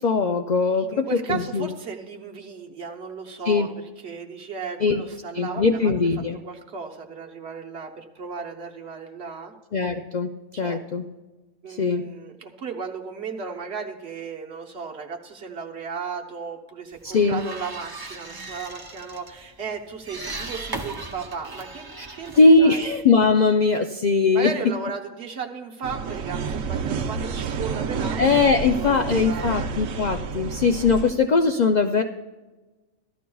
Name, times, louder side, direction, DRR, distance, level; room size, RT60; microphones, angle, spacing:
voice 1, 0.0-1.7 3.5-3.7 4.8-5.0 5.3-6.4 9.7-11.0 11.8-12.0 17.1-17.4 22.0-22.1 22.4-24.5 28.2-32.0, left 4 dB, 85° left, 5 dB, 0.3 m, -20 dB
voice 2, 0.8-5.9 6.3-9.5 10.5-10.8 11.6-21.8 22.1-22.9 24.3-30.0, right 5 dB, 55° right, 2 dB, 1.2 m, -35 dB
sound 1, 16.9-23.4, right 3 dB, 25° right, 0.5 m, -38 dB
sound 2, 25.8-31.1, right 5 dB, 85° right, 1.1 m, -29 dB
15.5 x 12.5 x 2.3 m, 1.2 s
omnidirectional pair, 1.4 m